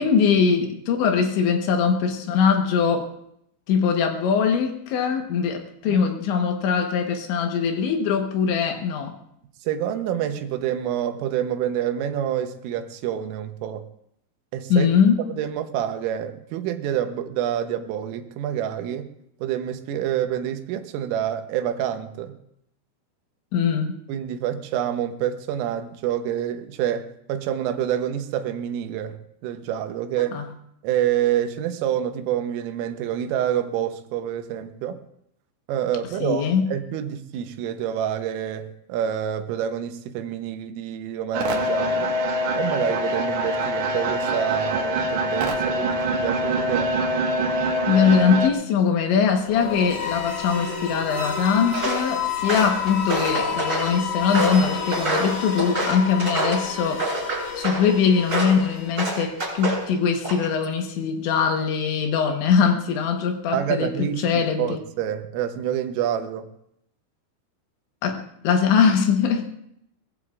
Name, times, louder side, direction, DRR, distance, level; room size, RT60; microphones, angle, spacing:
voice 1, 0.0-3.1 3.7-9.2 14.7-15.2 23.5-24.0 30.3-30.4 36.2-36.7 47.9-57.0 57.6-63.9 64.2-64.8 68.0-69.5, left 6 dB, 75° left, 4 dB, 3.4 m, -21 dB
voice 2, 9.6-13.9 14.5-14.9 15.3-19.1 19.4-22.4 24.1-29.2 29.4-30.4 30.8-35.0 35.7-42.1 42.5-46.9 63.5-64.2 64.6-66.5, right 10 dB, 85° right, 8 dB, 3.5 m, -27 dB
sound 1, 41.3-48.5, right 1 dB, 65° right, 3.1 m, -24 dB
sound 2, 49.4-59.3, left 6 dB, 55° left, 4.1 m, -31 dB
Walk footsteps, 51.7-52.1 52.4-53.9 54.3-56.7 57.0-57.9 58.3-58.6 59.0-59.8 60.2-60.6, right 2 dB, 20° right, 7.3 m, -27 dB
22.5 x 19.5 x 2.5 m, 0.75 s
omnidirectional pair, 5.7 m